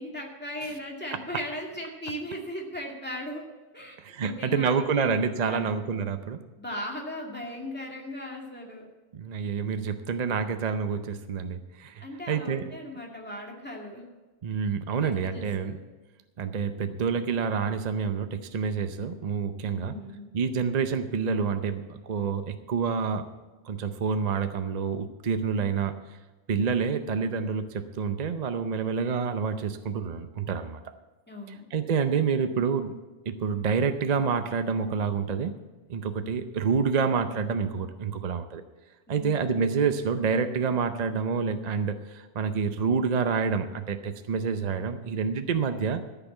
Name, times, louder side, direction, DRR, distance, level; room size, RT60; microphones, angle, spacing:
voice 1, 0.0-3.4 3.7-4.0 4.2-5.8 6.6-8.9 12.0-14.0 14.9-15.7 19.6-20.3 31.3-31.6 39.1-39.5, left 1 dB, 10° left, -1 dB, 2.1 m, -38 dB
voice 2, 4.0-6.4 9.1-12.7 14.4-15.7 16.4-19.9 20.3-23.3 23.6-26.0 26.5-30.8 31.5-32.9 33.3-35.5 35.9-38.6 39.1-46.0, right 6 dB, 45° right, 8 dB, 0.6 m, -28 dB
13.5 x 5.9 x 8.1 m, 1.2 s
omnidirectional pair, 1.4 m